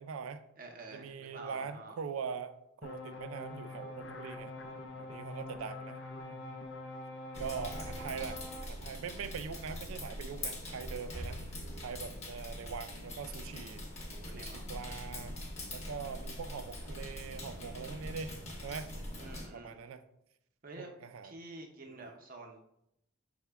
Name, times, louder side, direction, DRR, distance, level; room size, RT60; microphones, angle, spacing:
voice 1, 0.0-0.4 0.9-2.5 2.8-4.5 5.0-6.0 6.2-6.4 7.4-11.4 11.8-13.8 14.3-15.3 15.7-18.3 18.6-18.9 19.5-20.0 20.8-21.3 21.9-22.1, right 6 dB, 85° right, 11 dB, 0.4 m, -42 dB
voice 2, 0.6-1.9 14.1-14.6 19.2-19.8 20.6-20.9 21.2-22.6, right 2 dB, 45° right, 3 dB, 0.6 m, -49 dB
sound 1, 2.8-8.7, left 2 dB, 55° left, 0.5 m, -44 dB
sound 2, 7.3-19.5, left 1 dB, 30° left, 0.8 m, -43 dB
5.7 x 2.1 x 3.3 m, 0.80 s
head